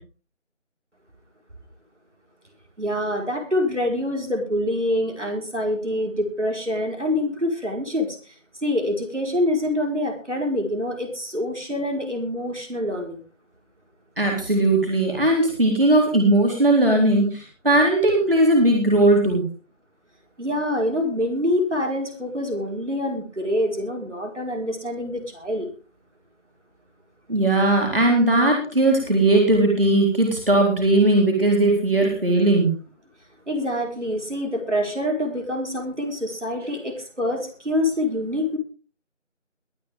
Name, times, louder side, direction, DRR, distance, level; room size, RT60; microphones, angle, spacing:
voice 1, 2.8-8.3 8.6-13.2 20.4-25.7 33.5-38.6, left 1 dB, 65° right, 2 dB, 4.8 m, -26 dB
voice 2, 14.2-19.4 27.3-32.7, right 2 dB, 45° right, 0 dB, 4.0 m, -18 dB
21.5 x 10.5 x 3.6 m, 0.36 s
figure-of-eight pair, 175°, 38 cm